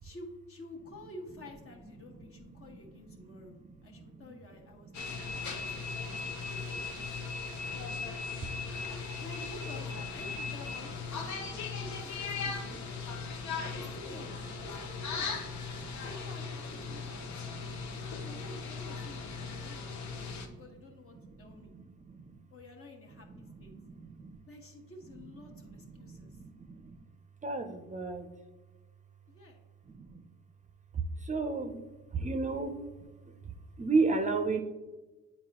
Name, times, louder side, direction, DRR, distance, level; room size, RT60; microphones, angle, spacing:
voice 1, 0.0-6.2 6.9-7.4 7.7-7.9 9.2-15.3 16.1-20.2 20.6-21.7 22.5-23.7 24.5-26.4 29.3-29.6, left 2 dB, 45° left, 2 dB, 1.4 m, -51 dB
voice 2, 2.1-4.3 4.9-7.2 7.5-8.6 10.3-10.4 11.2-11.8 12.3-13.8 14.2-14.5 15.3-16.0 16.9-18.3 18.8-20.7 21.1-22.4 23.1-24.4 25.1-27.0 27.4-28.3 29.8-30.3 30.9-31.8 32.1-32.9 33.2-34.6, right 3 dB, 25° right, 6 dB, 0.6 m, -38 dB
sound 1, 4.9-20.5, left 4 dB, 70° left, 0.9 m, -38 dB
8.4 x 4.3 x 2.9 m, 1.2 s
cardioid pair, 90°, 30 cm